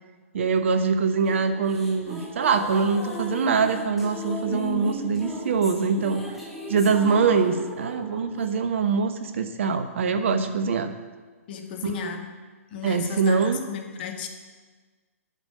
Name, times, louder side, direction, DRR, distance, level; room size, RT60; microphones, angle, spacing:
voice 1, 0.3-6.2 6.7-10.9 11.8-12.2 12.8-13.6, right 5 dB, 55° right, 9 dB, 1.0 m, -23 dB
sound 1, 1.2-8.5, equal, ahead, 2.3 m, -36 dB
voice 2, 11.5-12.3 12.7-14.3, left 6 dB, 40° left, 5 dB, 1.7 m, -35 dB
9.5 x 7.1 x 8.5 m, 1.4 s
figure-of-eight pair, 125°, 8 cm